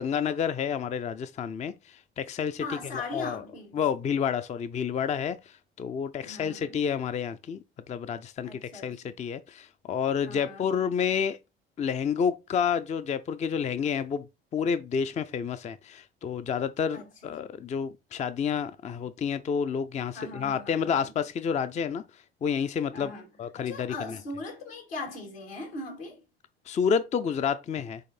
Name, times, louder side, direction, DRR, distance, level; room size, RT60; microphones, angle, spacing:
voice 1, 0.0-2.6 2.9-3.4 3.7-5.4 5.8-7.6 7.9-11.4 11.8-14.2 14.5-22.0 22.4-23.1 23.4-23.9 26.7-28.1, left 7 dB, 25° left, 0.5 m, -29 dB
voice 2, 2.6-3.8 6.2-6.8 8.4-9.1 10.2-10.7 16.9-17.1 20.1-21.1 22.9-23.3 23.6-26.2, left 2 dB, 75° left, 2.4 m, -39 dB
7.7 x 3.2 x 4.1 m
figure-of-eight pair, 60°, 30 cm